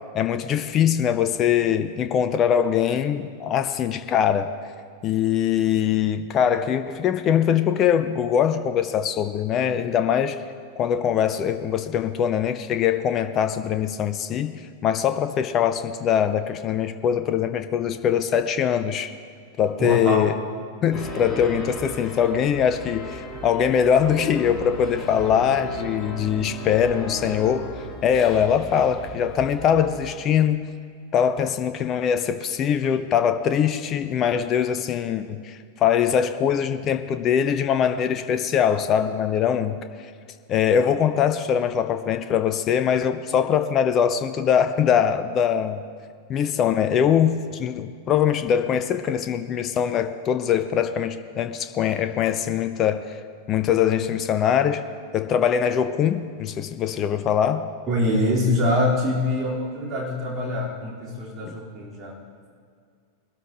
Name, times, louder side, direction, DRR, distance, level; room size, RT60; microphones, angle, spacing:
voice 1, 0.1-4.5 5.0-10.4 10.8-19.1 19.6-20.3 20.8-27.7 28.0-30.7 31.1-40.1 40.5-45.8 46.3-53.2 53.5-54.8 55.1-57.7 61.4-61.5, left 8 dB, 30° left, 9 dB, 0.6 m, -22 dB
voice 2, 19.8-20.3 57.9-62.2, left 1 dB, 25° right, -5 dB, 4.4 m, -24 dB
sound 1, 20.9-30.1, equal, 10° left, 3.5 m, -36 dB
21.5 x 13.0 x 3.1 m, 2.1 s
figure-of-eight pair, 90°, 0 cm